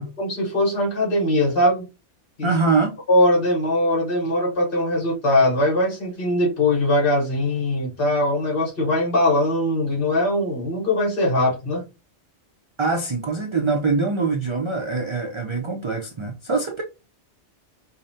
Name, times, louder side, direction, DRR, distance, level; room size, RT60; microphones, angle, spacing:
voice 1, 0.2-1.9 2.4-2.5 3.1-11.8, left 1 dB, 50° left, 1.4 m, -21 dB
voice 2, 2.4-3.0 12.8-16.8, right 4 dB, 40° right, 0.5 m, -23 dB
5.2 x 2.1 x 2.7 m
omnidirectional pair, 1.2 m